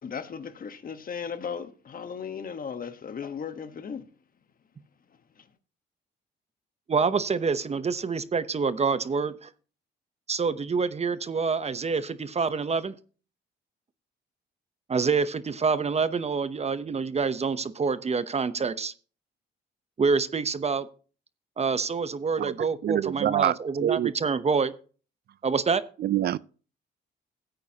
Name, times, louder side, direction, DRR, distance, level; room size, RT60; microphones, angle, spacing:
voice 1, 0.0-4.0, left 6 dB, 45° left, 1.2 m, -36 dB
voice 2, 6.9-9.5 10.3-12.9 14.9-18.9 20.0-20.9 21.6-24.7 25.4-25.8, right 5 dB, 30° right, 0.8 m, -27 dB
voice 3, 22.8-24.1 26.0-26.4, right 11 dB, 55° right, 0.4 m, -26 dB
15.5 x 8.8 x 2.9 m
cardioid pair, 90°, 20 cm